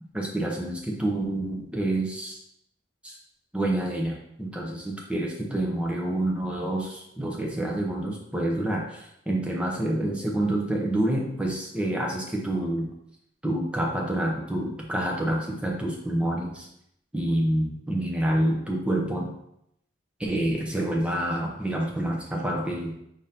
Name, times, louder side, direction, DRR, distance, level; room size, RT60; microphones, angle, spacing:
voice 1, 0.1-2.4 3.0-3.2 3.5-12.9 13.4-16.7 17.1-19.3 20.2-22.9, right 1 dB, 5° right, -1 dB, 0.7 m, -28 dB
5.1 x 3.6 x 2.8 m, 0.77 s
head